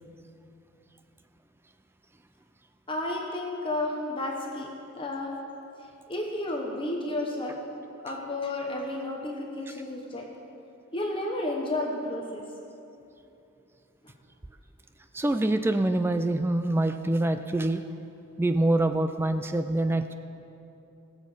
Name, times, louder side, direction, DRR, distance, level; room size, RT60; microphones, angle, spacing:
voice 1, 2.9-5.3 6.1-7.6 8.0-10.3 10.9-12.4, left 1 dB, 25° left, 0 dB, 1.0 m, -32 dB
voice 2, 15.1-17.8 18.4-20.1, right 1 dB, 10° right, 9 dB, 0.3 m, -25 dB
18.5 x 7.4 x 4.9 m, 2.8 s
head